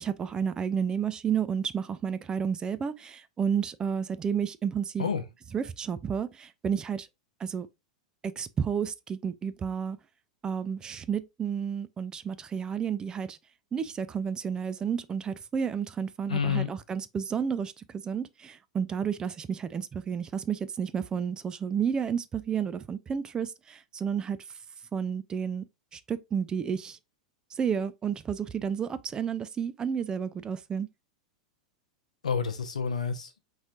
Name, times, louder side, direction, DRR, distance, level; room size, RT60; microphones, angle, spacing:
voice 1, 0.0-5.1 5.5-7.1 7.4-7.7 8.2-10.0 10.4-13.4 13.7-24.4 24.9-25.7 25.9-27.0 27.5-30.9, right 7 dB, 20° right, 0.3 m, -31 dB
voice 2, 16.3-16.7 32.2-33.4, left 6 dB, 80° left, 0.7 m, -29 dB
4.1 x 3.1 x 2.4 m
figure-of-eight pair, 95°, 4 cm